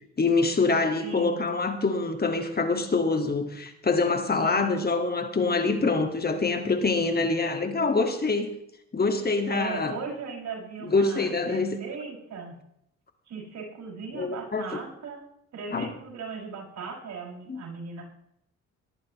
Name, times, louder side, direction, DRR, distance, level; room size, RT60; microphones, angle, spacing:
voice 1, 0.2-8.5 8.9-10.0 10.8-11.8 14.1-14.8 15.7-15.9 17.5-17.6, left 3 dB, 30° left, 6 dB, 2.1 m, -25 dB
voice 2, 1.0-1.5 4.4-4.8 9.5-12.6 13.3-15.2 15.5-18.0, right 5 dB, 65° right, -2 dB, 6.7 m, -38 dB
19.0 x 13.5 x 3.2 m, 0.76 s
cardioid pair, 90°, 30 cm